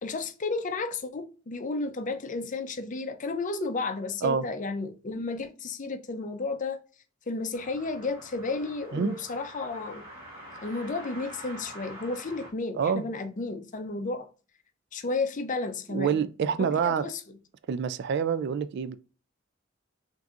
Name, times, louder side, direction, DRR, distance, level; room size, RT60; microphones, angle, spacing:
voice 1, 0.0-6.8 7.3-10.0 10.6-14.3 14.9-16.2 16.6-17.2, left 3 dB, 40° left, 0.5 m, -32 dB
sound 1, 7.5-12.5, equal, 30° right, 1.7 m, -46 dB
voice 2, 12.8-13.1 15.9-17.1 17.7-19.0, right 6 dB, 60° right, 0.3 m, -27 dB
5.9 x 2.6 x 2.5 m
head